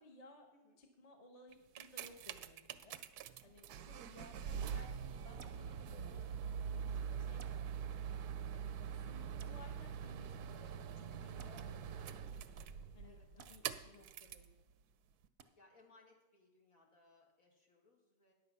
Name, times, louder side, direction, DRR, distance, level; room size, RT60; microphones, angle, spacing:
voice 1, 0.0-0.5 0.8-3.0 3.4-6.4 6.7-8.2 8.5-12.0 12.9-14.5, left 2 dB, 30° left, 3 dB, 1.0 m, -60 dB
sound 1, 1.5-14.5 15.2-15.3, right 7 dB, 85° right, 1.1 m, -44 dB
sound 2, 5.4-5.6 7.4-7.6 9.4-9.6 11.4-11.5 13.4-13.5 15.4-15.5, right 6 dB, 55° right, 0.8 m, -56 dB
voice 2, 11.5-12.4 13.0-14.0 15.5-18.3, left 2 dB, 65° left, 0 dB, 2.3 m, -68 dB
10.0 x 7.9 x 5.5 m, 1.1 s
omnidirectional pair, 1.6 m